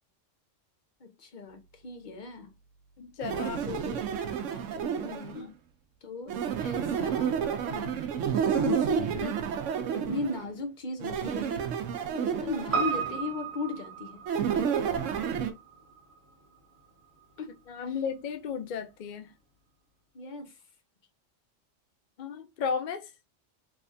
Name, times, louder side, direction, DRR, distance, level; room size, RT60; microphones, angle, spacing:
voice 1, 1.0-2.5 3.6-4.3 4.7-5.5 6.0-7.4 8.4-9.5 9.9-11.7 12.1-14.2 17.4-17.5 17.9-18.0 20.1-20.6, left 3 dB, 45° left, 0.8 m, -37 dB
voice 2, 3.0-4.0 7.7-7.9 17.7-19.3 22.2-23.1, left 6 dB, 70° left, 0.4 m, -35 dB
sound 1, 3.2-5.4 6.3-10.4 11.0-13.2 14.3-15.5, right 8 dB, 80° right, 1.0 m, -30 dB
Piano, 12.7-17.2 17.5-17.6, right 6 dB, 30° right, 1.2 m, -35 dB
3.4 x 3.2 x 2.6 m
omnidirectional pair, 1.3 m